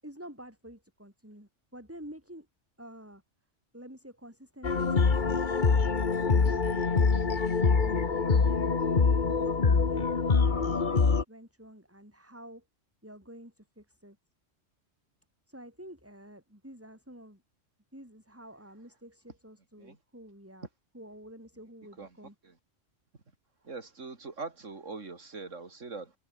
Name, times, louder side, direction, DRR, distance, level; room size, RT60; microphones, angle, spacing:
voice 1, 0.0-2.5 2.8-3.2 3.7-5.2 5.9-8.4 9.0-12.6 13.0-14.2 15.5-17.4 17.9-20.7 20.9-22.3, equal, 10° right, 6.6 m, -49 dB
sound 1, 4.6-11.2, left 4 dB, 40° left, 1.5 m, -25 dB
voice 2, 23.6-26.1, right 4 dB, 85° right, 3.1 m, -42 dB
omnidirectional pair, 1.3 m